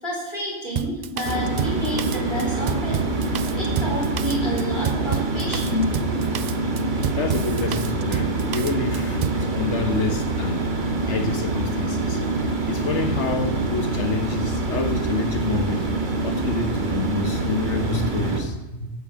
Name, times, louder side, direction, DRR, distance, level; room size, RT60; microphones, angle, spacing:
voice 1, 0.0-3.1 3.5-5.9, left 1 dB, 35° left, -4 dB, 4.4 m, -29 dB
Drum kit, 0.8-9.4, right 9 dB, 75° right, 0.4 m, -30 dB
sound 1, 1.2-18.4, right 2 dB, 40° right, 1.4 m, -25 dB
voice 2, 3.3-3.6 7.1-10.6 11.1-15.9 16.2-18.9, left 4 dB, 60° left, 6 dB, 1.7 m, -28 dB
11.5 x 7.2 x 7.8 m, 1.1 s
omnidirectional pair, 1.3 m